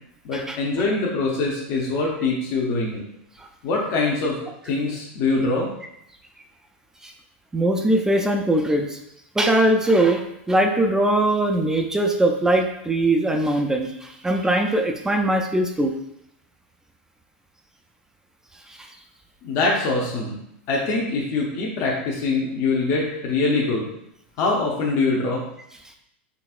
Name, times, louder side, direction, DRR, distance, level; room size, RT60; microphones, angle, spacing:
voice 1, 0.2-3.0 3.6-4.4 4.6-5.7 19.4-20.4 20.7-23.9 24.4-25.4, left 3 dB, 50° left, -3 dB, 0.8 m, -23 dB
voice 2, 7.5-9.0 9.4-15.9 18.7-18.9, right 1 dB, 10° right, 3 dB, 0.3 m, -21 dB
4.0 x 3.5 x 2.4 m, 0.79 s
hypercardioid pair, 115°, 7 cm